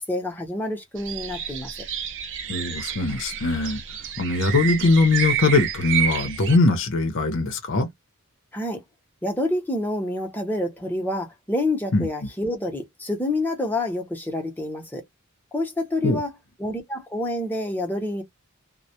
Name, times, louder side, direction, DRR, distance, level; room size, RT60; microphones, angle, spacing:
voice 1, 0.1-1.7 8.5-8.8 9.2-15.0 15.5-16.3 16.6-18.2, left 1 dB, 10° left, 0.7 m, -27 dB
sound 1, 1.0-6.6, right 8 dB, 55° right, 0.5 m, -29 dB
voice 2, 2.5-3.8 4.2-7.9 11.9-12.1 16.0-16.2, left 3 dB, 60° left, 0.6 m, -21 dB
2.1 x 2.1 x 2.8 m
head